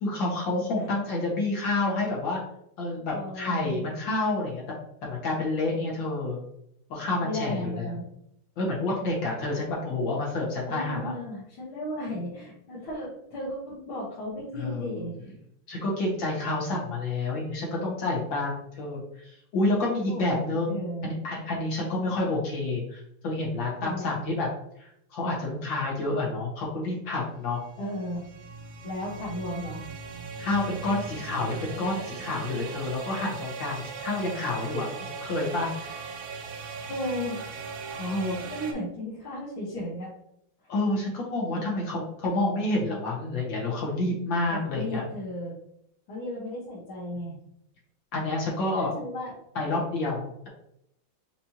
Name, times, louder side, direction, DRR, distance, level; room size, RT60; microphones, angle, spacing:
voice 1, 0.0-2.4 2.8-6.4 6.9-7.8 8.6-11.1 12.1-12.2 14.6-15.0 15.7-20.8 21.0-24.5 24.8-27.6 30.4-34.9 35.2-35.7 38.0-38.4 40.7-45.0 47.2-47.3 48.1-48.9 49.6-50.5, left 2 dB, 70° left, -3 dB, 2.1 m, -29 dB
voice 2, 3.1-3.9 7.3-8.1 10.7-15.1 20.1-21.1 23.8-24.2 27.8-28.2 28.8-29.8 32.7-32.9 35.1-35.2 36.9-37.4 38.4-40.1 44.5-45.5 46.1-47.3 48.8-49.3, left 1 dB, 85° left, -8 dB, 2.0 m, -35 dB
sound 1, 27.3-38.7, right 5 dB, 75° right, 1.4 m, -39 dB
5.3 x 3.0 x 2.8 m, 0.74 s
omnidirectional pair, 2.2 m